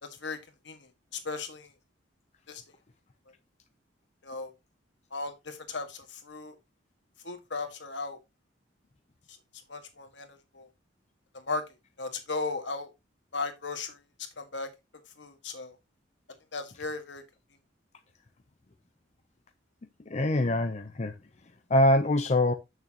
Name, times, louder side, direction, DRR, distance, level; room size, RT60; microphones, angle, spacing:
voice 1, 0.0-0.4 0.6-1.7 2.5-2.6 4.2-4.5 5.1-6.5 7.2-8.2 9.7-10.7 11.3-11.6 12.0-12.9 13.3-14.0 14.4-14.7 15.2-15.7 16.5-17.2, left 3 dB, 65° left, 1.7 m, -36 dB
voice 2, 20.1-21.1 21.7-22.5, left 1 dB, 35° left, 0.6 m, -24 dB
8.3 x 6.8 x 2.9 m
head